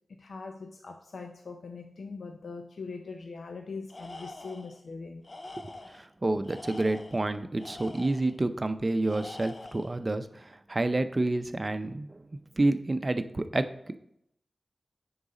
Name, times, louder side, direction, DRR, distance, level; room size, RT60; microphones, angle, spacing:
voice 1, 0.1-5.2, left 4 dB, 90° left, 4 dB, 0.5 m, -41 dB
Tools, 3.9-4.8 5.2-6.1 6.4-8.4 9.0-10.0, left 2 dB, 40° left, 0.6 m, -45 dB
voice 2, 5.6-12.2 12.6-13.7, right 2 dB, 35° right, 10 dB, 0.6 m, -29 dB
9.6 x 4.0 x 5.0 m, 0.75 s
wide cardioid pair, 95°, 0 cm